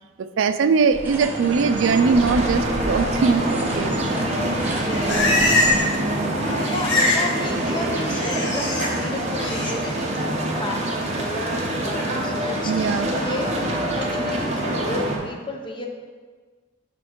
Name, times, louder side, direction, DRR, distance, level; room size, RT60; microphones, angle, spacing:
voice 1, 0.2-4.1 12.6-13.1, right 5 dB, 80° right, 10 dB, 0.3 m, -21 dB
sound 1, 0.9-5.8, right 1 dB, 10° right, 0.7 m, -33 dB
sound 2, 0.9-15.2, right 1 dB, 35° right, 0.9 m, -25 dB
Livestock farm animals working animals, 4.5-6.0 6.2-7.3 7.6-8.9 9.3-9.7, left 2 dB, 65° left, 1.1 m, -23 dB
voice 2, 4.6-5.5 5.8-6.1 6.3-15.9, left 2 dB, 25° left, 2 dB, 0.6 m, -33 dB
6.0 x 4.3 x 4.5 m, 1.5 s
head